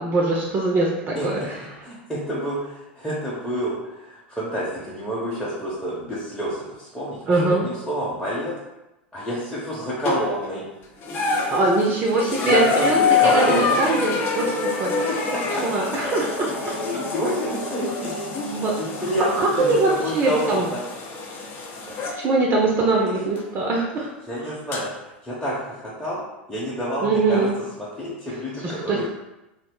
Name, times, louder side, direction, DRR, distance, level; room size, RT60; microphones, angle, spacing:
voice 1, 0.0-1.8 7.3-7.6 11.5-13.0 13.3-14.9 15.6-16.6 18.5-18.7 19.4-20.7 22.2-24.1 27.0-27.5 28.6-29.0, right 3 dB, 30° right, -1 dB, 0.5 m, -22 dB
voice 2, 1.1-1.5 1.8-8.5 9.1-10.6 12.4-13.8 15.0-15.6 16.8-20.8 24.3-24.9 25.2-26.2 26.5-27.5 27.8-29.1, equal, 5° left, -9 dB, 0.8 m, -28 dB
sound 1, 10.0-10.5 11.0-22.2 23.4-23.5 24.7-24.8, left 4 dB, 40° left, 0.5 m, -26 dB
2.4 x 2.0 x 3.6 m, 0.97 s
hypercardioid pair, 90°, 6 cm